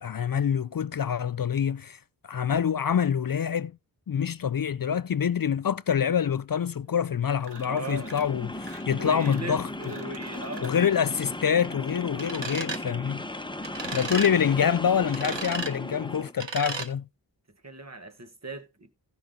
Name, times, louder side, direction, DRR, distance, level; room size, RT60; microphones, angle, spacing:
voice 1, 0.0-2.0 2.2-3.7 4.1-9.9 10.6-13.2 13.8-17.0, left 8 dB, 55° left, 0.5 m, -26 dB
sound 1, 7.4-8.3 8.6-10.8, right 4 dB, 70° right, 1.8 m, -48 dB
sound 2, 7.5-16.3, left 1 dB, 10° left, 0.8 m, -37 dB
voice 2, 7.7-8.1 8.9-10.7 17.6-18.9, right 2 dB, 40° right, 1.6 m, -38 dB
sound 3, 12.2-12.8 13.6-14.3 15.1-15.7 16.4-16.9, right 4 dB, 90° right, 1.5 m, -34 dB
16.0 x 5.7 x 3.8 m
wide cardioid pair, 55°, 42 cm